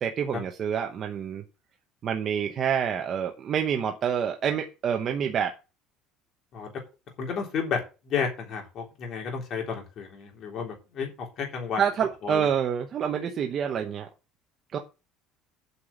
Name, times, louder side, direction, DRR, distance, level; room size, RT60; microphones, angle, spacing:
voice 1, 0.0-1.4 2.0-5.5 11.8-14.1 14.7-14.8, right 8 dB, 30° right, 3 dB, 0.9 m, -27 dB
voice 2, 7.2-7.8 8.1-11.8 12.2-12.5, left 6 dB, 35° left, 0 dB, 3.5 m, -32 dB
8.4 x 5.8 x 7.2 m, 0.30 s
cardioid pair, 180°, 0 cm